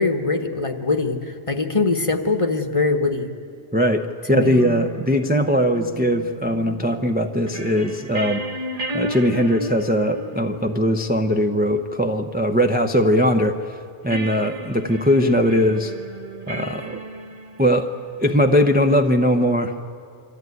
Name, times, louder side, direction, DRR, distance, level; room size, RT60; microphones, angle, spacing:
voice 1, 0.0-3.3 4.3-4.6, left 3 dB, 30° left, 6 dB, 1.1 m, -22 dB
voice 2, 3.7-8.4 8.9-13.8 14.0-15.9 16.5-17.0 17.6-17.9 18.2-19.8, equal, 10° right, 5 dB, 0.6 m, -20 dB
sound 1, 4.4-13.5 14.1-18.3, right 2 dB, 35° right, 1.2 m, -35 dB
26.5 x 14.0 x 9.4 m, 2.3 s
omnidirectional pair, 1.2 m